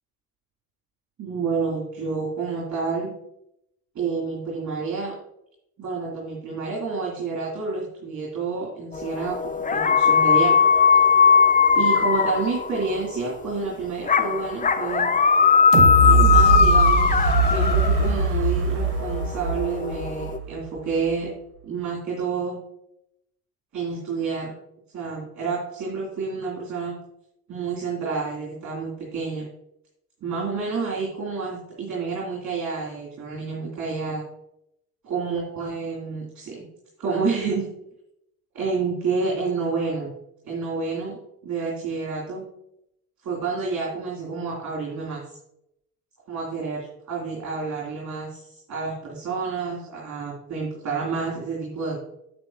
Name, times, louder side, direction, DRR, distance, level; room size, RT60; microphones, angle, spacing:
voice 1, 1.2-3.1 3.9-5.1 5.8-10.5 11.7-15.1 15.9-21.3 21.6-22.6 23.7-24.5 24.9-26.9 27.5-29.5 30.2-34.2 35.1-36.6 37.0-37.7 38.5-40.1 40.4-42.5 43.2-45.2 46.3-52.0, right 4 dB, 40° right, -4 dB, 2.8 m, -29 dB
sound 1, 8.9-13.0 14.1-18.3 18.9-20.4, left 6 dB, 20° left, 0.6 m, -19 dB
sound 2, 15.7-20.6 21.1-21.2, right 3 dB, 85° right, 1.1 m, -21 dB
8.6 x 8.0 x 2.8 m, 0.79 s
hypercardioid pair, 55°, 44 cm